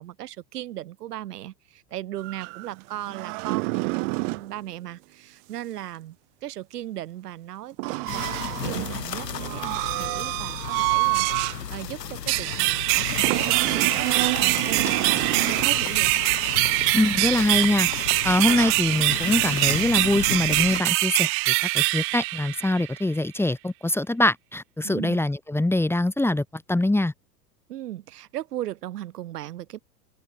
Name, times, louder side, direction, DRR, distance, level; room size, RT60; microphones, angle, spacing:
voice 1, 0.0-6.2 6.4-16.1 24.8-25.2 27.7-29.8, right 13 dB, 75° right, 3.4 m, -37 dB
sound 1, 2.2-4.5 7.8-11.6 12.1-12.2 13.2-15.8 18.4-18.7, right 37 dB, 55° right, 2.5 m, -28 dB
sound 2, 8.1-20.8, left 8 dB, 85° left, 3.8 m, -34 dB
sound 3, 12.3-23.0, right 29 dB, 30° right, 0.4 m, -24 dB
voice 2, 16.9-17.9 18.2-27.1, left 1 dB, 5° left, 1.9 m, -23 dB
hypercardioid pair, 100°, 48 cm